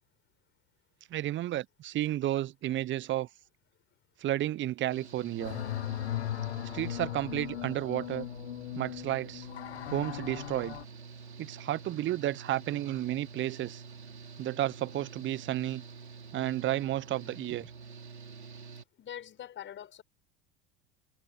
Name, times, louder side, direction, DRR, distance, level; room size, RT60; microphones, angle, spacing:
voice 1, 1.1-3.3 4.2-5.6 6.7-8.3 8.7-9.5 9.9-10.8 11.4-13.8 14.4-15.8 16.3-17.7, right 14 dB, 35° right, 1.0 m, -32 dB
Engine / Mechanical fan, 4.9-18.8, right 5 dB, 85° right, 3.5 m, -48 dB
sound 1, 5.4-10.8, left 13 dB, 75° left, 1.0 m, -38 dB
voice 2, 19.0-20.0, left 10 dB, 35° left, 6.1 m, -43 dB
figure-of-eight pair, 80°, 32 cm